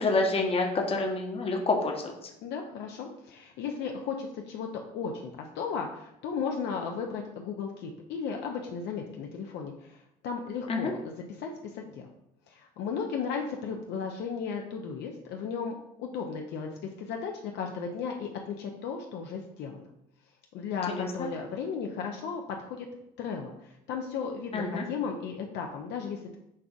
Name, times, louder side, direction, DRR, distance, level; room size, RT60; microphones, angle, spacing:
voice 1, 0.0-2.1 10.7-10.9 20.9-21.1 24.5-24.8, left 3 dB, 30° left, 2 dB, 0.7 m, -27 dB
voice 2, 2.4-10.0 10.2-12.1 12.5-19.9 20.5-22.9 23.2-26.4, left 6 dB, 65° left, 2 dB, 0.5 m, -35 dB
5.3 x 2.4 x 2.4 m, 0.83 s
supercardioid pair, 75°, 20 cm